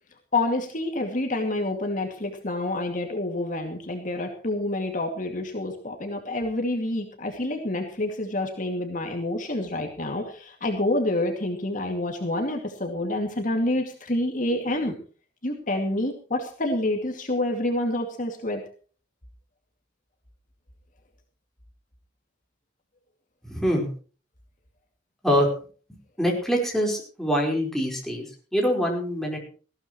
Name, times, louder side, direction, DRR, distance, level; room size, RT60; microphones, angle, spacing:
voice 1, 0.3-14.9 15.4-18.6, left 1 dB, 40° left, 2 dB, 2.4 m, -28 dB
voice 2, 23.5-23.9 25.2-25.5 26.2-28.2 28.5-29.4, equal, ahead, -1 dB, 4.7 m, -24 dB
19.5 x 16.0 x 3.1 m, 0.39 s
head